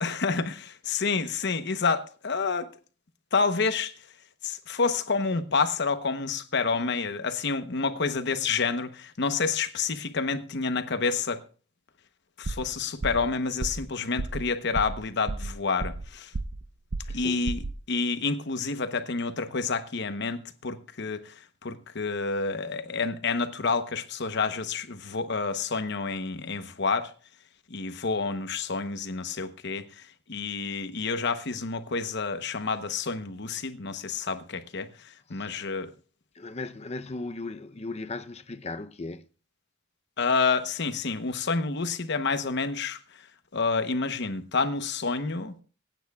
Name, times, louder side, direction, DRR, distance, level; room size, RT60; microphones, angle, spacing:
voice 1, 0.0-2.7 3.3-3.9 4.4-11.4 12.4-16.3 17.1-21.3 21.6-27.1 27.7-34.9 35.3-35.9 40.2-43.0 43.5-45.5, left 4 dB, 65° left, 1.0 m, -29 dB
sound 1, 12.4-12.7 13.0-13.3 13.6-13.9 14.2-14.4 14.7-15.0 15.3-16.1 16.3-16.6 16.9-17.2 17.5-17.8, right 3 dB, 65° right, 0.7 m, -32 dB
voice 2, 17.0-17.4 35.3-35.7 36.3-39.2, left 3 dB, 35° left, 0.6 m, -37 dB
25.5 x 9.1 x 2.4 m
head